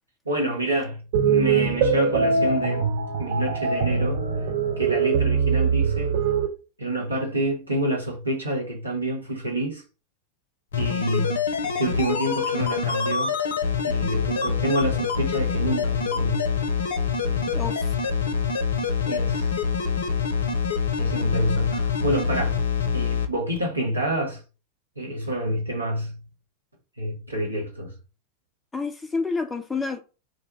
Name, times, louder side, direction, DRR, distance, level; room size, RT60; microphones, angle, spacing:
voice 1, 0.2-2.9 3.2-4.2 4.8-6.2 6.8-9.8 10.8-13.3 13.8-16.6 17.2-17.6 19.1-19.5 21.0-22.6 22.9-24.4 25.0-26.2 27.0-27.9, right 1 dB, 85° right, 1.0 m, -28 dB
sound 1, 1.1-6.5, right 5 dB, 55° right, 0.5 m, -22 dB
sound 2, 10.7-23.3 23.6-23.7, left 6 dB, 65° left, 0.5 m, -25 dB
voice 2, 17.5-17.9 28.7-30.0, left 4 dB, 10° left, 0.3 m, -29 dB
2.6 x 2.1 x 4.0 m
figure-of-eight pair, 90°, 0 cm